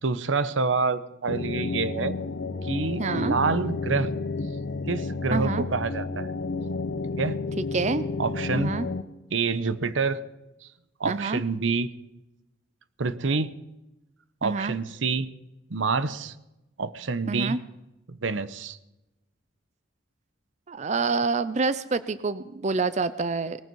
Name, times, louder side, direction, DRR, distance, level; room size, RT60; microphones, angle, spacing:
voice 1, 0.0-2.2 2.6-4.1 4.9-6.3 7.2-7.4 8.2-8.7 9.3-10.2 10.6-10.7 11.0-11.9 13.0-13.5 14.4-15.3 15.7-16.3 16.8-17.6 18.1-18.8, right 4 dB, 80° right, 15 dB, 0.9 m, -27 dB
sound 1, 1.3-9.0, left 3 dB, 65° left, 0.9 m, -31 dB
voice 2, 3.0-3.4 5.3-5.6 7.7-8.1 8.5-8.9 11.0-11.4 14.4-14.8 17.3-17.6 20.7-23.6, right 4 dB, 35° right, 15 dB, 0.5 m, -27 dB
19.5 x 14.5 x 4.6 m, 0.95 s
head